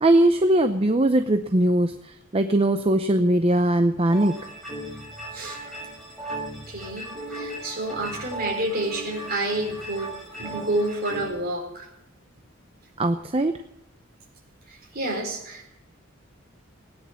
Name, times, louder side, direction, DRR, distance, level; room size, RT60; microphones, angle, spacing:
voice 1, 0.0-4.4 13.0-13.5, right 1 dB, 30° right, 8 dB, 0.7 m, -20 dB
sound 1, 4.1-11.3, right 1 dB, ahead, 6.2 m, -36 dB
voice 2, 5.3-5.9 6.7-10.1 10.4-11.9 14.7-15.7, right 1 dB, 50° right, 1 dB, 4.6 m, -29 dB
17.5 x 9.9 x 7.1 m, 0.84 s
head